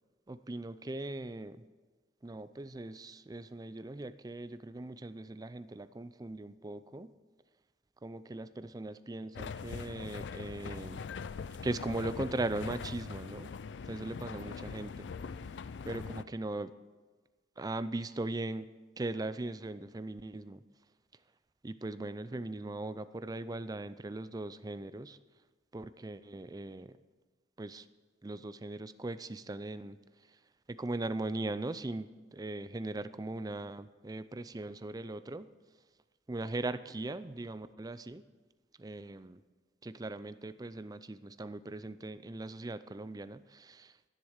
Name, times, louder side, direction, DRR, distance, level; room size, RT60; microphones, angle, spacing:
voice 1, 0.3-1.6 2.2-7.1 8.0-11.1 11.6-13.5 13.8-15.1 15.8-16.7 17.6-20.6 21.1-21.2 21.6-25.2 25.7-27.0 27.6-27.9 28.2-30.4 30.7-35.5 36.3-38.3 38.8-39.4 39.8-44.0, right 2 dB, 20° right, 13 dB, 0.4 m, -39 dB
sound 1, 9.3-16.2, left 5 dB, 75° left, 0.4 m, -42 dB
11.0 x 10.5 x 6.5 m, 1.3 s
head